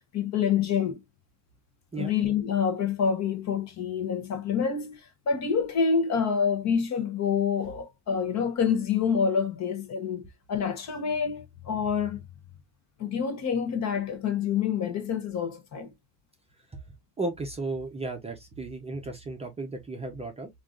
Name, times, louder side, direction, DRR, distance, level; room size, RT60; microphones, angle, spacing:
voice 1, 0.1-1.0 2.0-5.0 5.3-12.2 13.0-15.9, left 6 dB, 35° left, 0.8 m, -27 dB
voice 2, 17.2-20.5, right 2 dB, 15° right, 0.6 m, -34 dB
3.3 x 2.6 x 2.3 m
supercardioid pair, 120°, 45 cm